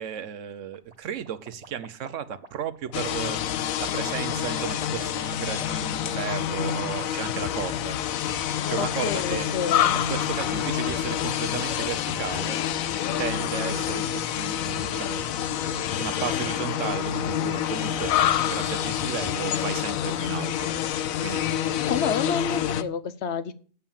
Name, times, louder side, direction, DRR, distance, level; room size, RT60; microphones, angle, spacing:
voice 1, 0.0-3.4 3.8-8.0 8.7-9.5 9.9-12.6 13.2-15.6 16.0-18.2 18.4-20.7 21.2-21.4, right 9 dB, 70° right, 13 dB, 1.0 m, -34 dB
sound 1, 0.7-19.6, right 4 dB, 35° right, 0.9 m, -46 dB
sound 2, 2.9-22.8, left 10 dB, 85° left, 1.1 m, -27 dB
voice 2, 8.8-9.9 21.9-23.5, left 7 dB, 60° left, 13 dB, 0.9 m, -29 dB
8.4 x 7.3 x 7.1 m, 0.43 s
omnidirectional pair, 1.4 m